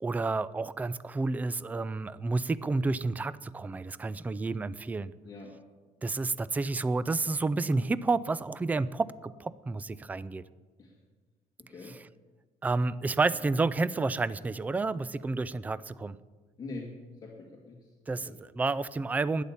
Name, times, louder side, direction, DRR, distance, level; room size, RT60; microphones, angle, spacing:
voice 1, 0.0-5.1 6.0-10.4 11.9-12.0 12.6-16.2 18.1-19.4, right 3 dB, 10° right, 17 dB, 0.3 m, -30 dB
voice 2, 5.2-5.6 10.8-11.0 11.6-12.0 16.6-16.9 17.2-18.4, left 3 dB, 30° left, -2 dB, 1.7 m, -44 dB
12.0 x 10.0 x 7.2 m, 1.3 s
cardioid pair, 155°, 13 cm